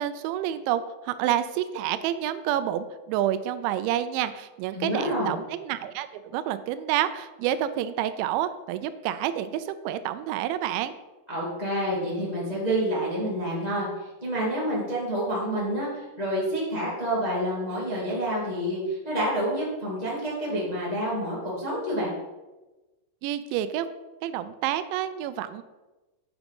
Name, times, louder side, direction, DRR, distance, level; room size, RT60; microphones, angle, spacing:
voice 1, 0.0-10.9 23.2-23.9 24.2-25.6, right 11 dB, 85° right, 12 dB, 2.7 m, -28 dB
voice 2, 4.7-5.3 11.3-22.1, equal, 75° left, -6 dB, 0.3 m, -28 dB
9.0 x 6.1 x 5.3 m, 1.1 s
omnidirectional pair, 5.5 m